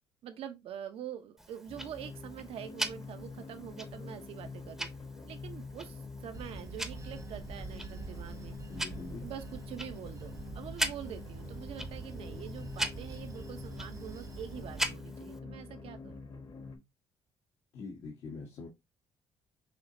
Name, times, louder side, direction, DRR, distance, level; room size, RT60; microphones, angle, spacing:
voice 1, 0.2-4.9 5.3-8.6 9.2-16.2, right 9 dB, 70° right, 0.9 m, -45 dB
Tick-tock, 1.4-15.4, right 1 dB, 5° right, 0.8 m, -42 dB
sound 1, 1.7-16.8, left 4 dB, 50° left, 1.5 m, -46 dB
Bell / Train, 6.3-14.9, right 4 dB, 35° right, 0.7 m, -46 dB
voice 2, 8.7-9.3 17.7-18.7, left 3 dB, 65° left, 1.4 m, -44 dB
6.3 x 2.9 x 2.7 m
cardioid pair, 100°, 10 cm